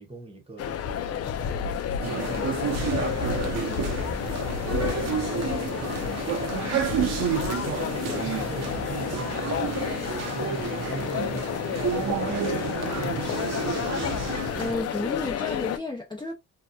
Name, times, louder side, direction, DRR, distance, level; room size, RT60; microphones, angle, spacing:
voice 1, 0.0-6.3 6.8-7.4 7.9-10.0 10.2-13.6, right 2 dB, 20° right, 1.1 m, -42 dB
sound 1, 0.6-15.8, left 8 dB, 55° left, 0.5 m, -30 dB
sound 2, 2.0-14.7, right 7 dB, 55° right, 0.8 m, -30 dB
voice 2, 14.6-16.3, left 2 dB, 15° left, 0.7 m, -31 dB
2.8 x 2.2 x 2.3 m
cardioid pair, 90°, 30 cm